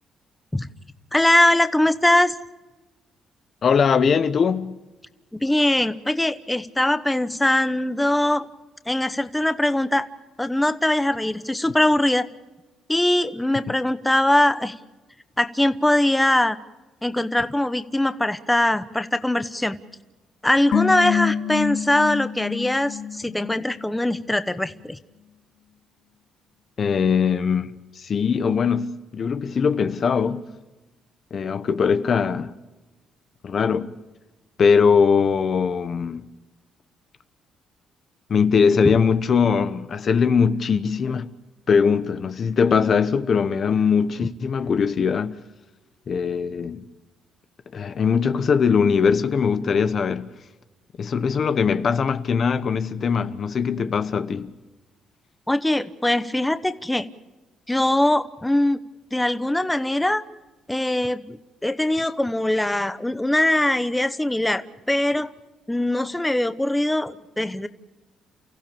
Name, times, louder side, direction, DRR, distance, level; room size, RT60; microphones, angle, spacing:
voice 1, 1.1-2.4 5.3-8.5 8.9-10.1 10.4-12.3 12.9-14.7 15.4-16.6 17.0-19.8 20.4-25.0 38.8-38.9 55.5-57.1 57.7-58.8 59.1-60.2 60.7-65.3 65.7-67.7, left 1 dB, 5° left, 0.9 m, -21 dB
voice 2, 3.6-4.8 26.8-30.5 31.3-32.5 33.4-33.9 34.6-36.3 38.3-41.3 41.7-45.4 46.1-46.8 47.7-50.3 51.0-54.5, left 6 dB, 45° left, 1.0 m, -21 dB
sound 1, 20.7-24.0 24.3-24.4, left 8 dB, 65° left, 2.3 m, -27 dB
29.5 x 15.5 x 7.0 m
cardioid pair, 120°, 0 cm